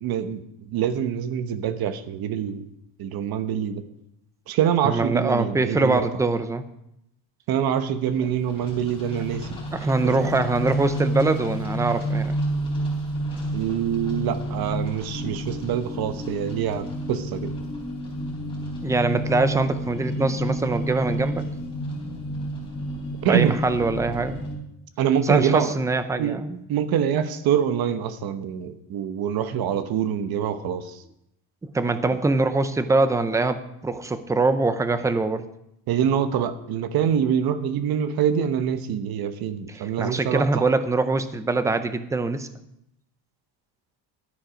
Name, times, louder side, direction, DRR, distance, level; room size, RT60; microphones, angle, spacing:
voice 1, 0.0-2.6 3.0-3.8 4.5-6.1 7.5-9.6 10.0-10.3 13.5-17.5 23.2-23.6 25.0-25.7 26.2-26.4 26.7-31.0 35.9-40.6, right 8 dB, 60° right, 10 dB, 1.1 m, -25 dB
voice 2, 4.8-6.6 9.7-12.4 18.8-21.4 23.3-24.4 25.2-26.6 31.7-35.5 39.7-42.5, right 3 dB, 10° right, 11 dB, 0.5 m, -23 dB
sound 1, 8.0-24.6, right 1 dB, 15° left, 3.8 m, -30 dB
12.0 x 9.4 x 5.1 m, 0.78 s
cardioid pair, 165°, 41 cm